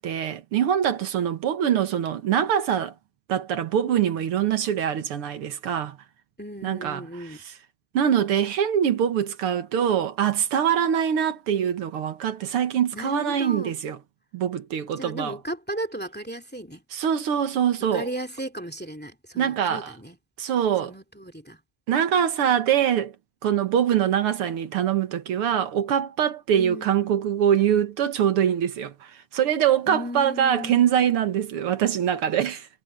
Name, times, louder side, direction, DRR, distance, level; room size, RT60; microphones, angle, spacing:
voice 1, 0.0-2.9 3.3-6.0 6.6-7.5 7.9-14.0 14.3-15.4 16.9-18.1 19.4-19.9 20.4-20.9 21.9-23.1 23.4-32.7, right 9 dB, 80° right, 2.2 m, -24 dB
voice 2, 6.4-7.4 12.9-13.7 15.0-16.8 17.9-20.2 20.8-21.6 26.6-27.1 29.9-30.9, equal, 5° left, 2.2 m, -35 dB
omnidirectional pair, 2.4 m